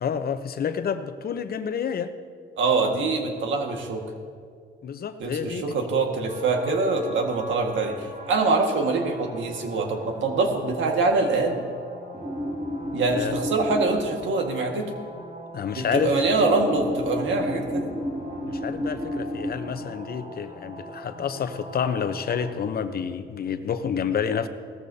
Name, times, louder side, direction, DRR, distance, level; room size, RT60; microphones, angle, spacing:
voice 1, 0.0-2.1 4.8-5.8 13.1-13.3 15.5-16.2 18.5-24.5, left 7 dB, 50° left, 10 dB, 0.8 m, -29 dB
voice 2, 2.6-4.0 5.2-11.7 12.9-14.9 15.7-17.9, right 3 dB, 70° right, 3 dB, 1.8 m, -24 dB
sound 1, 6.3-22.5, left 1 dB, 35° right, 3.8 m, -35 dB
17.5 x 14.0 x 2.8 m, 2.1 s
cardioid pair, 90°, 20 cm